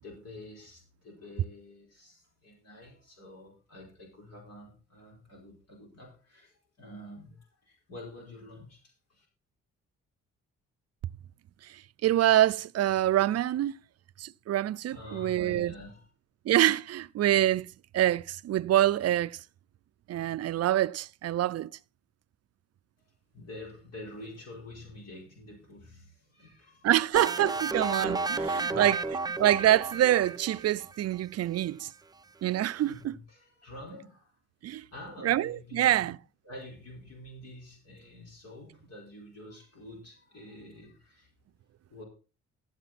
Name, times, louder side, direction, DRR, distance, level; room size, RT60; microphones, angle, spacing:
voice 1, 0.0-9.3 14.9-16.1 23.0-23.1 23.3-27.2 28.1-29.1 32.8-34.3 34.7-36.2 36.4-41.3 41.9-42.0, left 1 dB, 55° left, 4.8 m, -48 dB
voice 2, 12.0-13.7 14.2-15.7 16.5-17.7 17.9-19.4 20.1-21.7 26.8-29.0 29.4-31.9 32.4-33.1 34.6-34.8 35.2-36.2, right 13 dB, 55° right, 0.5 m, -26 dB
sound 1, 27.2-30.9, right 3 dB, 15° right, 0.6 m, -32 dB
12.5 x 8.0 x 4.2 m
cardioid pair, 90°, 30 cm